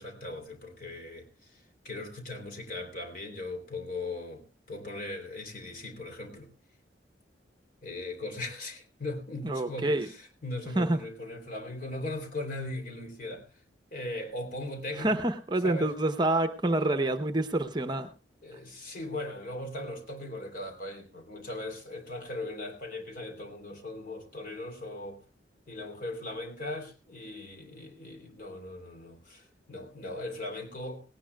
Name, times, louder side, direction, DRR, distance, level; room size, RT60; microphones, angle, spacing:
voice 1, 0.0-6.5 7.8-13.5 13.9-15.2 15.6-15.9 18.4-25.2 25.7-31.0, left 2 dB, 50° left, 4 dB, 3.3 m, -39 dB
voice 2, 9.4-10.1 10.8-11.0 15.0-18.1, right 2 dB, 25° right, 8 dB, 0.8 m, -27 dB
18.0 x 18.0 x 2.3 m, 0.31 s
head